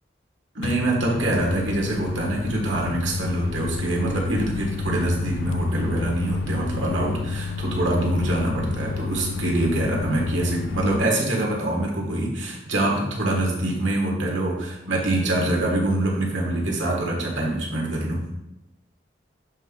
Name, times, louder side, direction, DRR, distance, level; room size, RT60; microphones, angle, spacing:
voice 1, 0.5-18.2, right 1 dB, 90° right, -1 dB, 1.5 m, -24 dB
Microwave oven, 0.6-11.0, left 5 dB, 80° left, 0.3 m, -31 dB
7.5 x 3.4 x 3.8 m, 0.94 s
head